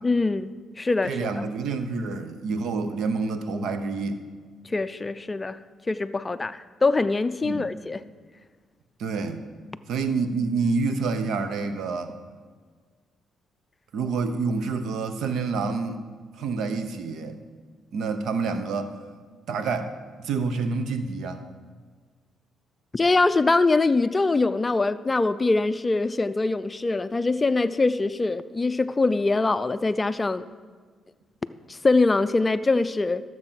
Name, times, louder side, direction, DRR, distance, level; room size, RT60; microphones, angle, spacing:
voice 1, 0.0-1.5 4.6-5.6 5.9-8.0 22.9-30.5 31.7-33.2, left 3 dB, 25° left, 13 dB, 0.4 m, -23 dB
voice 2, 1.0-4.2 7.4-7.7 9.0-9.4 9.9-12.1 13.9-16.0 16.4-17.4 17.9-19.0 19.5-19.9 20.2-21.4, right 4 dB, 75° right, 9 dB, 0.9 m, -28 dB
13.0 x 7.5 x 5.8 m, 1.5 s
cardioid pair, 90°, 0 cm